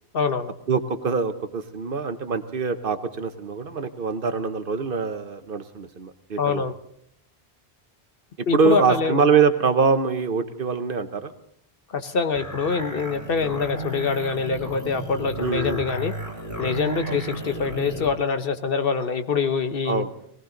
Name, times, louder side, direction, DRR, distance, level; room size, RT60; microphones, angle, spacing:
voice 1, 0.1-0.5 6.4-6.7 8.5-9.2 11.9-16.1 16.6-20.0, left 5 dB, 60° left, 8 dB, 1.1 m, -25 dB
voice 2, 0.7-6.7 8.5-11.3 15.4-15.8 17.1-17.2 19.9-20.1, right 5 dB, 60° right, 9 dB, 1.1 m, -24 dB
sound 1, 12.3-18.1, right 1 dB, 15° left, 3.8 m, -34 dB
20.0 x 17.5 x 3.9 m, 0.70 s
omnidirectional pair, 1.0 m